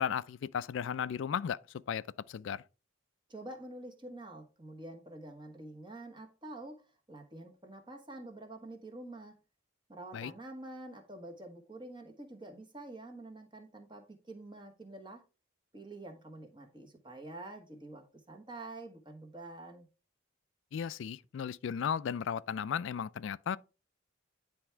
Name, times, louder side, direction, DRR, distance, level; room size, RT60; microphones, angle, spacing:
voice 1, 0.0-1.6 1.9-2.6 10.1-10.3 20.7-23.6, left 7 dB, 70° left, 0.3 m, -35 dB
voice 2, 3.3-9.4 9.9-15.2 15.7-19.9, right 2 dB, 25° right, 1.3 m, -47 dB
9.9 x 3.5 x 4.5 m
head